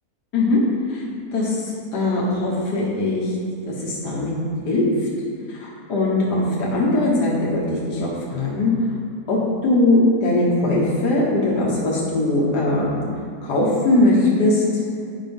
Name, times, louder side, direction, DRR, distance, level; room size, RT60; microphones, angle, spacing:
voice 1, 1.3-3.3 3.8-4.3 4.7-4.8 5.6-8.7 9.3-13.0 13.4-14.6, left 2 dB, 85° left, -5 dB, 2.0 m, -20 dB
9.9 x 5.3 x 5.4 m, 2.3 s
omnidirectional pair, 1.7 m